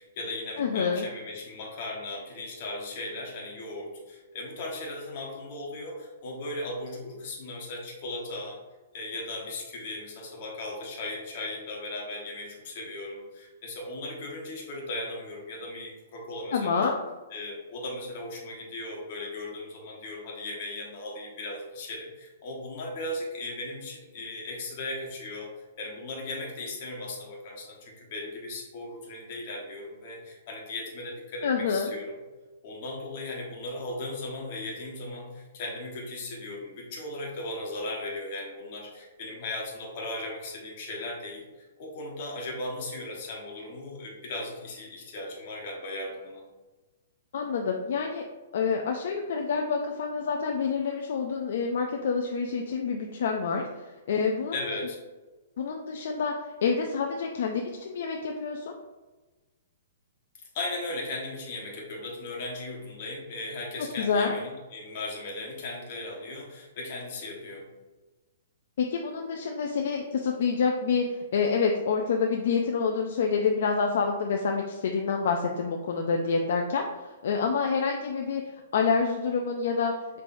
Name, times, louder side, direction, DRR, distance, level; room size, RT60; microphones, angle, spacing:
voice 1, 0.0-8.6 8.9-16.9 17.3-25.5 25.8-32.1 32.6-41.4 41.8-46.4 54.5-55.0 60.5-67.7, left 2 dB, 40° left, -2 dB, 1.1 m, -37 dB
voice 2, 0.6-1.0 16.5-16.9 31.4-31.9 47.3-48.2 48.5-54.8 55.6-56.3 56.6-58.7 64.0-64.3 68.8-80.2, left 5 dB, 60° left, 2 dB, 0.4 m, -27 dB
5.4 x 3.2 x 2.6 m, 1.2 s
hypercardioid pair, 170°, 0 cm